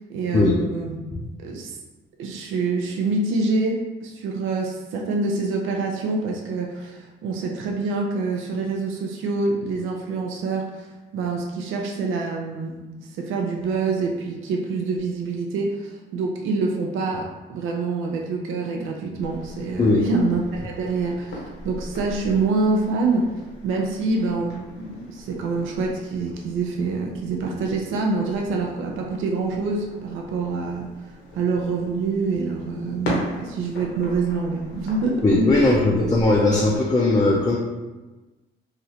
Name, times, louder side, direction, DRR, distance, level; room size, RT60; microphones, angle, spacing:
voice 1, 0.1-1.0 1.4-1.8 2.2-10.9 11.1-21.4 21.6-23.3 23.6-30.9 31.3-35.7, right 3 dB, 85° right, 0 dB, 0.5 m, -26 dB
sound 1, 19.2-36.8, left 1 dB, 90° left, 0.9 m, -39 dB
voice 2, 35.2-37.6, left 2 dB, 20° left, -3 dB, 0.4 m, -18 dB
3.0 x 2.4 x 2.7 m, 1.2 s
cardioid pair, 90°, 20 cm